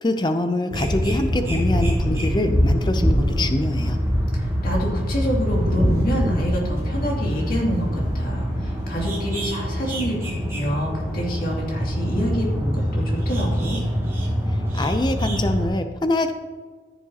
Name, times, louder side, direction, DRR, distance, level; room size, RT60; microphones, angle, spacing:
voice 1, 0.0-4.0 14.7-16.3, left 1 dB, 25° left, 7 dB, 0.5 m, -24 dB
sound 1, 0.7-15.7, equal, 15° right, 2.8 m, -24 dB
voice 2, 4.3-13.8, equal, 50° left, -3 dB, 2.5 m, -27 dB
14.0 x 7.2 x 2.9 m, 1.4 s
head